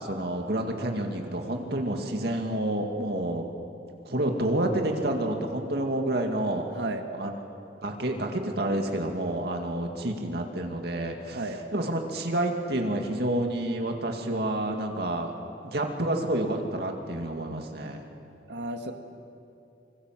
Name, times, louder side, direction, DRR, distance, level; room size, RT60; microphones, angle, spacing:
voice 1, 0.0-3.5 4.1-6.6 7.2-7.5 7.8-11.4 11.7-15.3 15.6-18.0, right 1 dB, 65° right, 3 dB, 2.3 m, -29 dB
voice 2, 11.3-11.6 18.5-18.9, right 2 dB, 80° right, 4 dB, 1.9 m, -33 dB
26.0 x 25.5 x 7.6 m, 2.6 s
head